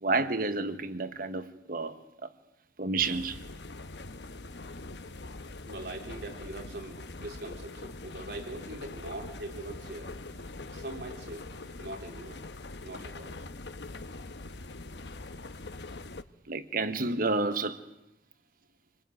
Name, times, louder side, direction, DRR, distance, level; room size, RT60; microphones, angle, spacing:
voice 1, 0.0-2.3 2.8-3.4 16.5-17.9, right 3 dB, 55° right, 1.3 m, -30 dB
sound 1, 3.0-16.2, left 2 dB, 75° left, 1.1 m, -43 dB
voice 2, 5.7-10.1 10.7-11.5 11.8-12.4 12.8-13.4, right 2 dB, 70° right, 4.4 m, -42 dB
28.0 x 21.0 x 9.3 m
head